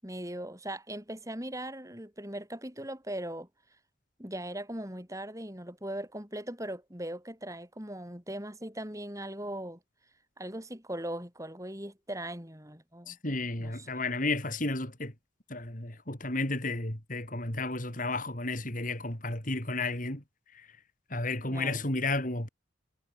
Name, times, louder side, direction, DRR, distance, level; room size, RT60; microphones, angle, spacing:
voice 1, 0.0-3.5 4.2-9.8 10.4-13.2 13.6-13.9 21.5-21.8, right 1 dB, 15° right, 7.5 m, -39 dB
voice 2, 13.1-15.1 15.5-20.2 20.5-20.7 21.1-22.5, left 2 dB, 40° left, 4.3 m, -32 dB
head